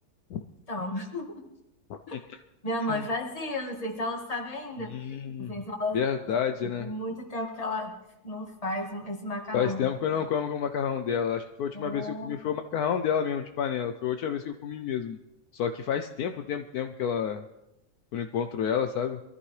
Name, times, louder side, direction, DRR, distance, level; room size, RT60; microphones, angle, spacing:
voice 1, 0.7-1.3 2.6-4.9 5.4-6.0 6.6-7.9 8.2-9.8 11.7-12.4, left 1 dB, 25° left, 1 dB, 1.8 m, -33 dB
voice 2, 1.9-2.4 2.9-3.0 4.9-5.6 5.9-6.9 9.5-15.2 15.5-17.4 18.1-19.2, left 8 dB, 70° left, 7 dB, 1.1 m, -30 dB
23.0 x 14.0 x 3.2 m, 0.92 s
omnidirectional pair, 1.7 m